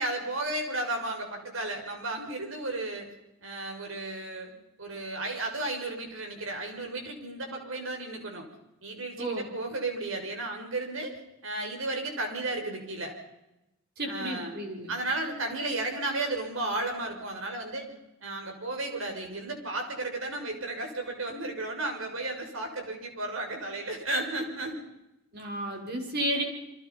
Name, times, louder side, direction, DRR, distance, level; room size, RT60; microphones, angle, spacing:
voice 1, 0.0-3.1 3.4-4.5 4.8-8.5 8.8-13.1 14.1-14.6 14.9-17.9 18.2-24.8 26.4-26.5, right 2 dB, 65° right, 3 dB, 6.0 m, -33 dB
voice 2, 9.2-9.5 14.0-14.9 25.3-26.4, right 1 dB, 50° right, 2 dB, 6.2 m, -32 dB
29.5 x 24.5 x 5.5 m, 0.92 s
head